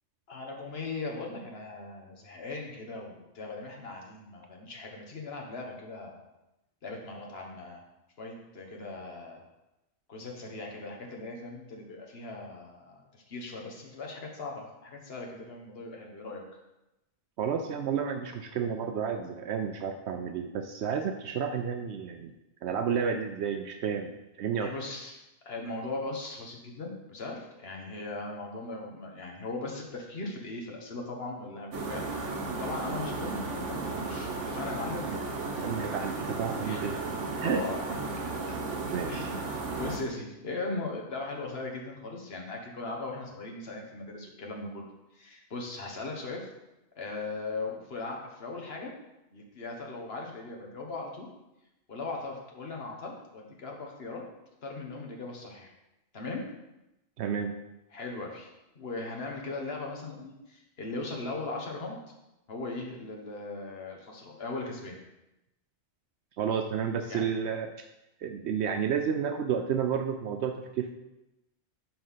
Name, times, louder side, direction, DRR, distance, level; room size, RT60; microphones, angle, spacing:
voice 1, 0.3-6.2 6.8-7.8 8.2-9.4 10.1-13.0 13.3-16.4 24.6-25.2 25.4-32.1 32.6-35.0 36.6-36.8 37.4-38.2 39.1-39.5 39.8-44.9 45.2-46.5 47.0-48.9 49.3-51.3 51.9-54.2 54.6-55.7 56.1-56.4 57.9-62.0 62.5-65.0 67.1-67.2, left 3 dB, 60° left, 0 dB, 1.6 m, -38 dB
voice 2, 17.4-22.3 22.6-24.7 35.5-37.0 37.4-37.6 38.9-39.3 57.2-57.5 66.4-67.7 68.2-70.9, right 7 dB, 70° right, 6 dB, 0.8 m, -31 dB
sound 1, 31.7-40.0, right 3 dB, 90° right, 1.3 m, -34 dB
5.9 x 5.3 x 5.6 m, 0.94 s
omnidirectional pair, 1.2 m